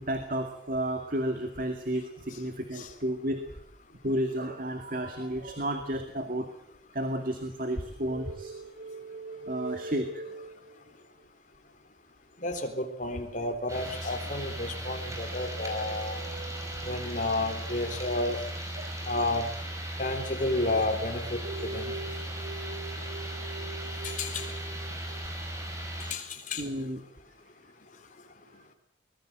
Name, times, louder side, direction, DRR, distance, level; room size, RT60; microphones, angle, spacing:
voice 1, 0.0-3.5 4.0-6.5 6.9-8.5 9.5-10.2 18.8-18.9 26.6-27.0, right 1 dB, 45° right, 6 dB, 2.2 m, -32 dB
sound 1, 8.0-11.2 14.7-17.3 21.4-25.2, right 3 dB, 85° right, 3.2 m, -43 dB
voice 2, 12.4-16.2 16.9-18.4 19.1-19.4 20.0-22.0 24.0-24.5 26.1-26.6, left 2 dB, 40° left, 5 dB, 3.9 m, -31 dB
sound 2, 13.7-26.1, right 1 dB, 15° right, 5.3 m, -37 dB
24.5 x 20.5 x 7.8 m, 0.68 s
head